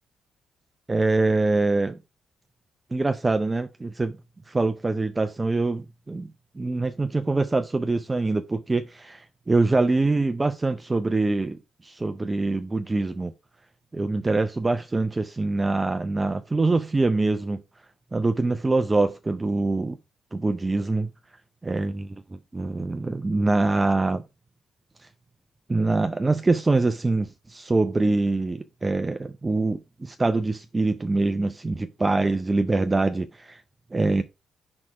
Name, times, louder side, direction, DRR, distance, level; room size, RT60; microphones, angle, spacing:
voice 1, 0.9-2.0 2.9-4.2 4.5-6.3 6.6-13.3 13.9-17.6 18.1-20.0 20.3-21.1 21.6-24.2 25.7-33.6 33.9-34.2, right 3 dB, 20° right, 0.5 m, -24 dB
4.8 x 4.2 x 4.8 m
cardioid pair, 90°, 0 cm